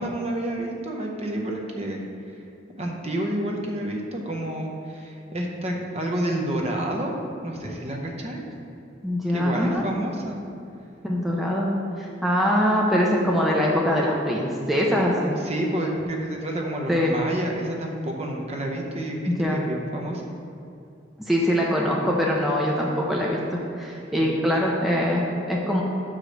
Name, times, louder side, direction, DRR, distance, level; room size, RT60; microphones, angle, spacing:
voice 1, 0.0-2.4 2.8-8.4 9.3-10.4 15.3-20.2 24.2-24.4, right 1 dB, 35° right, 1 dB, 0.7 m, -29 dB
voice 2, 9.0-9.8 11.0-11.7 12.0-15.4 16.9-17.1 19.3-19.6 21.3-25.8, equal, ahead, -3 dB, 0.6 m, -23 dB
5.6 x 5.0 x 6.4 m, 2.7 s
head